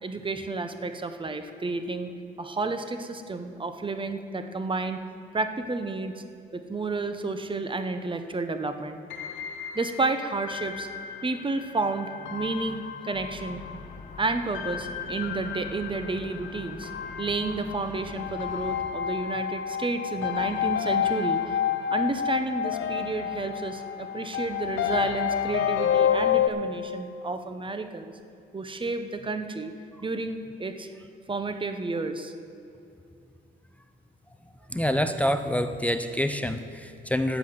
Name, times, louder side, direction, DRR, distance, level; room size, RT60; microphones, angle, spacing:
voice 1, 0.0-2.1 2.4-5.0 5.3-6.2 6.5-9.0 9.7-10.9 11.2-13.6 14.2-16.9 17.2-21.6 21.9-28.1 28.5-29.7 30.0-30.9 31.3-32.3 34.7-34.8, right 3 dB, 25° right, 8 dB, 1.0 m, -31 dB
sound 1, 9.1-26.5, left 9 dB, 80° left, 0.7 m, -30 dB
sound 2, 13.1-18.8, left 4 dB, 40° left, 1.6 m, -45 dB
voice 2, 34.7-37.4, left 1 dB, 5° left, 8 dB, 0.6 m, -26 dB
12.0 x 7.2 x 7.9 m, 2.6 s
cardioid pair, 90°, 20 cm